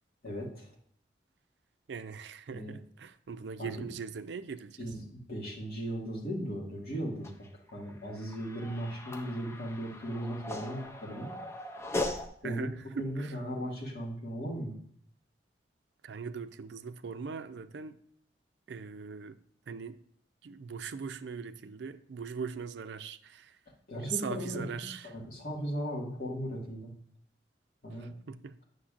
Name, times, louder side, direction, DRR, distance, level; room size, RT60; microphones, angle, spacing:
voice 1, 0.2-0.7 2.5-2.8 3.6-3.9 4.8-11.3 12.4-12.7 13.0-14.8 23.9-26.9 27.8-28.1, equal, 55° left, 1.9 m, -37 dB
voice 2, 1.9-4.8 12.4-13.4 16.0-18.0 18.7-19.4 19.7-20.0 20.4-23.5 24.0-25.1 28.0-28.6, right 6 dB, 75° right, 0.4 m, -40 dB
sound 1, 7.2-12.3, left 1 dB, 15° left, 0.5 m, -39 dB
8.5 x 6.5 x 2.5 m
head